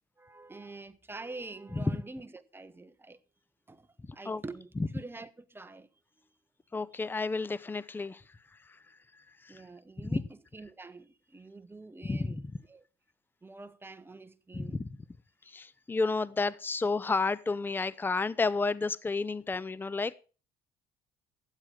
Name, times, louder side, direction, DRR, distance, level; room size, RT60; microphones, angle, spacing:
voice 1, 0.2-3.2 3.7-3.9 4.1-5.9 6.9-7.2 9.5-12.8 13.4-14.9, right 3 dB, 15° right, 1.0 m, -46 dB
voice 2, 6.7-8.2 10.0-10.2 12.1-12.4 14.5-14.7 15.5-20.2, left 3 dB, 10° left, 0.5 m, -31 dB
12.5 x 9.0 x 6.1 m
cardioid pair, 110°, 17 cm